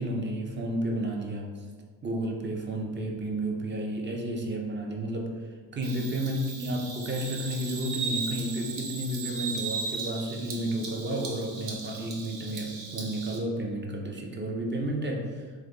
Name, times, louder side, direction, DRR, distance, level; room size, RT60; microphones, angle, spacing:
voice 1, 0.0-1.6 2.0-15.5, right 1 dB, 25° right, 1 dB, 0.5 m, -32 dB
Bird vocalization bird call bird song, 5.8-13.4, right 4 dB, 55° right, 0.7 m, -37 dB
3.2 x 2.2 x 3.6 m, 1.5 s
cardioid pair, 100°, 45 cm